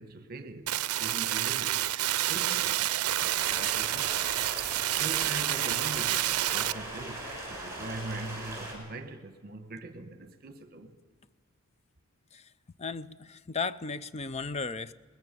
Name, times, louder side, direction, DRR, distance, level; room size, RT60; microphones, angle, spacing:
voice 1, 0.0-1.8 2.2-4.1 5.0-10.9, right 2 dB, 45° right, 1.2 m, -42 dB
sound 1, 0.7-6.7, right 14 dB, 80° right, 0.5 m, -29 dB
Stream, 3.2-8.7, right 1 dB, 10° right, 6.6 m, -40 dB
voice 2, 12.8-14.9, left 4 dB, 30° left, 0.5 m, -35 dB
20.5 x 20.5 x 6.8 m
head